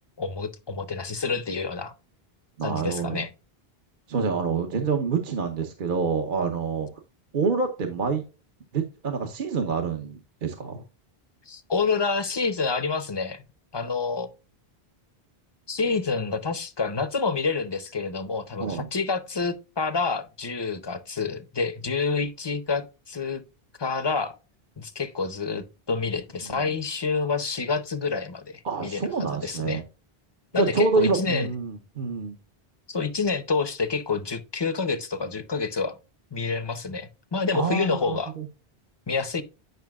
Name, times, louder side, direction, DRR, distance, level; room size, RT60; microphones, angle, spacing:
voice 1, 0.2-1.9 2.6-3.3 11.5-13.4 13.7-14.3 15.7-23.4 23.8-24.4 24.8-29.8 30.5-31.5 32.9-36.0 36.3-38.3 39.1-39.4, left 4 dB, 30° left, 0.6 m, -28 dB
voice 2, 2.6-3.2 4.1-6.9 7.3-8.2 8.7-10.8 18.6-18.9 26.5-26.7 28.6-29.8 30.5-32.4 37.5-38.4, right 5 dB, 55° right, 1.0 m, -27 dB
9.2 x 5.5 x 2.3 m
omnidirectional pair, 1.0 m